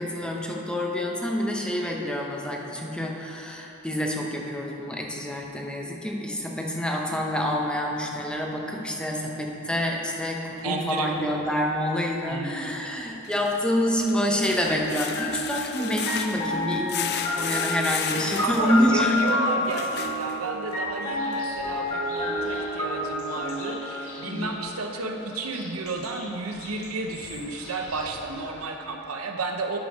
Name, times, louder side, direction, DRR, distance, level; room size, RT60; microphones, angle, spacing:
voice 1, 0.0-19.7 24.2-24.6, equal, 5° left, -1 dB, 0.7 m, -27 dB
sound 1, 10.6-10.7 13.1-20.7 21.3-21.4 21.9-22.0, left 8 dB, 50° left, 0.4 m, -34 dB
voice 2, 10.6-11.1 12.3-12.7 18.1-29.8, right 3 dB, 90° right, 3 dB, 0.8 m, -32 dB
sound 2, 15.1-24.9, left 1 dB, 20° left, 1.6 m, -29 dB
sound 3, 21.1-28.6, left 2 dB, 75° left, 1.9 m, -45 dB
10.0 x 5.1 x 5.2 m, 2.9 s
head